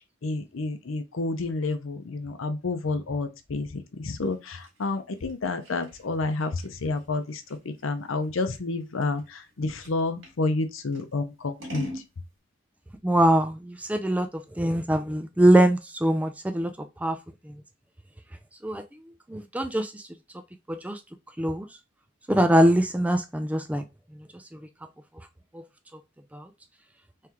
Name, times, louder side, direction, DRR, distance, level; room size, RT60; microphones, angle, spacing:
voice 1, 0.2-7.4 7.8-11.9, left 3 dB, 75° left, 0.6 m, -29 dB
Scissors, 4.2-10.4 10.9-12.1, equal, 65° right, 1.7 m, -43 dB
voice 2, 13.0-16.7 17.0-17.2 18.6-18.8 19.3-20.0 20.7-21.0 21.4-21.7 22.3-23.8 26.3-26.5, right 1 dB, 5° right, 0.3 m, -22 dB
3.6 x 3.2 x 2.9 m
head